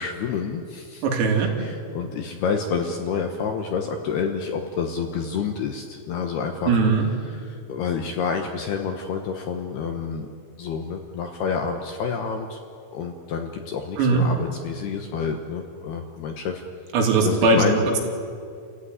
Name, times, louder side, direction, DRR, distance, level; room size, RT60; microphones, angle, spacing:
voice 1, 0.0-1.0 1.6-6.8 7.3-10.3 10.6-12.6 12.9-16.6 17.2-17.9, left 6 dB, 70° left, 4 dB, 2.5 m, -28 dB
voice 2, 1.0-1.5 6.7-7.0 14.0-14.3 16.9-17.6, right 4 dB, 80° right, 1 dB, 5.4 m, -19 dB
29.5 x 15.0 x 9.6 m, 2.4 s
omnidirectional pair, 6.0 m